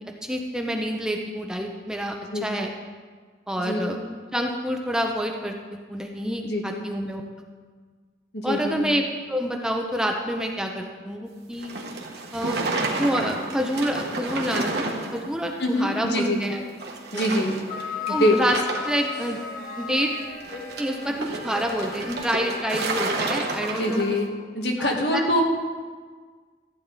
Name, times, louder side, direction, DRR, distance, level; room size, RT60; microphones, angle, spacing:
voice 1, 0.2-2.7 3.5-4.0 4.3-7.2 8.4-9.0 9.3-11.7 12.3-12.6 13.0-14.9 15.1-16.6 17.1-17.2 18.1-18.6 18.8-19.4 19.8-20.1 20.8-24.0 24.8-25.3, equal, 5° right, 2 dB, 0.7 m, -27 dB
voice 2, 2.3-2.7 3.6-4.0 6.4-6.9 8.3-8.8 15.6-16.4 17.1-17.6 18.1-18.4 23.7-24.3 24.5-25.4, left 1 dB, 65° left, 1 dB, 1.7 m, -24 dB
sound 1, 11.5-15.3 15.6-15.7 16.4-16.6 16.8-17.8 18.1-19.0 20.4-24.2, right 3 dB, 60° right, 1.4 m, -30 dB
sound 2, 15.7-16.5 17.7-24.1, left 5 dB, 45° left, 1.6 m, -36 dB
14.5 x 9.7 x 4.1 m, 1.5 s
head